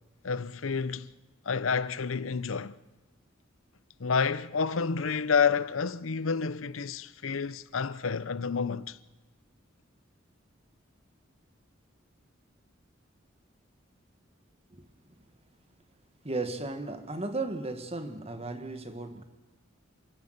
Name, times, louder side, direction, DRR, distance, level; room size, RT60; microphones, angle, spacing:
voice 1, 0.2-1.1 1.4-2.8 4.0-9.0, left 5 dB, 90° left, 0.7 m, -29 dB
voice 2, 14.7-15.1 16.2-19.2, right 2 dB, 30° right, 1.6 m, -35 dB
27.5 x 14.0 x 8.0 m
head